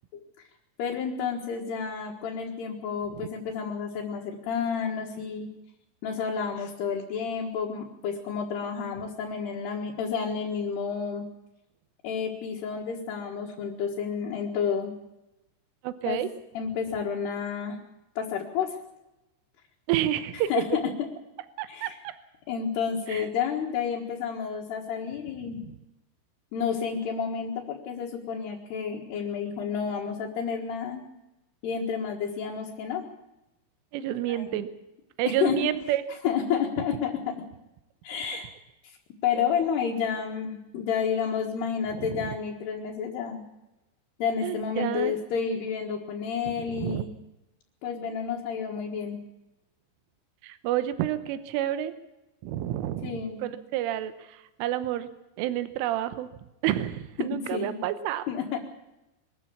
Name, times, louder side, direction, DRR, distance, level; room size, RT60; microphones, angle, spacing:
voice 1, 0.8-5.5 6.0-11.3 12.0-14.9 16.1-16.2 16.6-17.8 18.2-18.8 20.5-20.8 21.7-22.0 22.5-25.6 26.5-31.0 31.6-33.0 34.3-34.5 35.4-35.6 36.2-37.3 38.0-38.5 38.8-38.9 39.2-43.4 44.2-47.1 47.8-49.2 53.0-53.4 57.2-57.8 58.3-58.6, left 7 dB, 65° left, -1 dB, 3.5 m, -30 dB
voice 2, 15.8-16.3 19.9-20.5 21.6-22.1 23.1-23.3 33.9-34.7 35.2-36.0 39.4-39.6 42.0-42.4 44.4-45.2 46.5-47.0 50.4-51.9 52.4-55.1 55.4-56.3 56.6-58.2, right 12 dB, 85° right, 12 dB, 3.5 m, -29 dB
23.0 x 13.5 x 8.4 m, 0.95 s
omnidirectional pair, 5.6 m